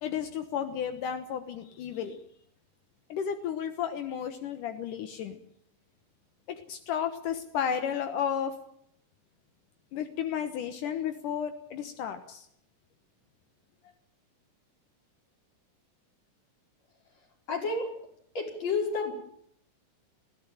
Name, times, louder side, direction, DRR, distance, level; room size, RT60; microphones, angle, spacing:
voice 1, 0.0-2.2 3.1-5.4 6.7-8.5 9.9-12.5, left 8 dB, 75° left, 8 dB, 2.8 m, -33 dB
voice 2, 17.5-17.9 18.3-19.1, left 4 dB, 50° left, 1 dB, 6.3 m, -30 dB
20.5 x 16.5 x 9.1 m, 0.68 s
omnidirectional pair, 3.7 m